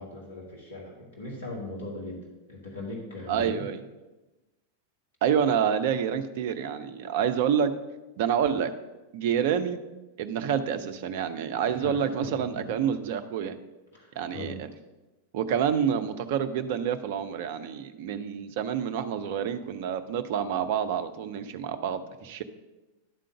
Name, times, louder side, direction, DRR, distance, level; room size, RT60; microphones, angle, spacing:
voice 1, 0.0-2.2 2.5-3.7 11.7-12.6 13.9-14.6, left 2 dB, 65° left, -2 dB, 1.8 m, -39 dB
voice 2, 3.3-3.8 5.2-7.7 8.2-8.7 9.1-9.8 10.2-13.6 14.2-14.7 15.3-22.4, right 8 dB, 50° right, 11 dB, 0.6 m, -28 dB
11.5 x 3.8 x 6.5 m, 1.1 s
figure-of-eight pair, 90°, 0 cm